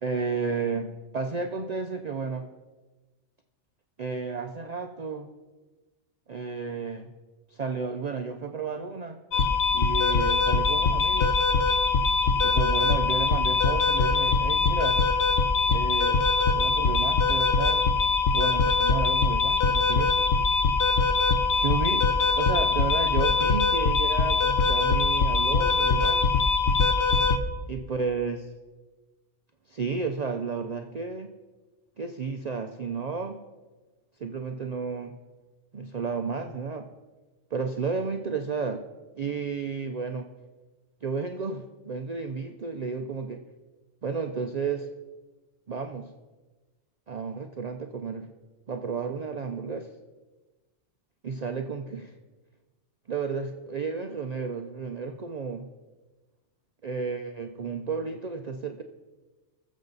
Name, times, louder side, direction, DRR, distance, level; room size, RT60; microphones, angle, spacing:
voice 1, 0.0-2.5 4.0-5.3 6.3-7.1 7.5-9.2 9.7-11.4 12.4-15.0 15.7-16.2 16.5-17.8 18.3-20.1 21.6-22.1 22.4-26.3 27.7-28.4 29.7-31.3 32.0-33.4 34.2-35.1 35.7-36.8 37.5-38.9 39.2-40.3 41.0-43.4 44.0-44.9 45.7-46.1 47.1-48.3 48.7-49.9 51.2-52.1 53.1-55.7 56.8-58.8, right 5 dB, 45° right, 5 dB, 0.6 m, -32 dB
sound 1, 9.3-27.4, left 4 dB, 60° left, 1.1 m, -23 dB
20.0 x 7.3 x 4.0 m, 1.2 s
omnidirectional pair, 1.2 m